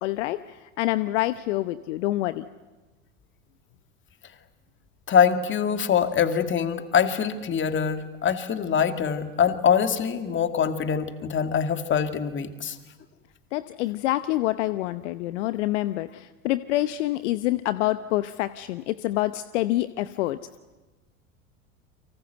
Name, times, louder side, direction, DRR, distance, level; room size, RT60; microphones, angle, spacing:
voice 1, 0.0-2.4 13.5-20.4, left 16 dB, 60° left, 13 dB, 0.9 m, -27 dB
voice 2, 5.1-12.8, left 7 dB, 30° left, 8 dB, 2.2 m, -24 dB
30.0 x 24.5 x 8.0 m, 1.2 s
hypercardioid pair, 85°, 40 cm